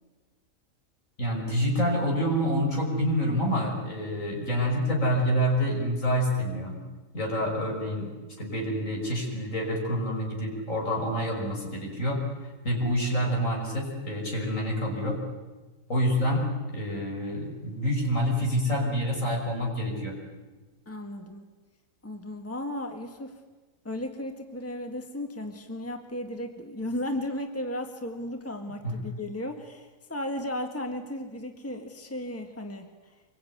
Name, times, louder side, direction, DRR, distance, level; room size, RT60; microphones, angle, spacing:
voice 1, 1.2-6.8 7.1-8.1 8.4-12.2 12.6-15.2 15.9-20.2 28.8-28.9, equal, 65° left, 0 dB, 6.2 m, -27 dB
voice 2, 20.9-21.5 22.0-23.4 23.8-32.9, left 1 dB, 10° left, 5 dB, 1.8 m, -35 dB
25.5 x 23.0 x 9.5 m, 1.3 s
omnidirectional pair, 1.5 m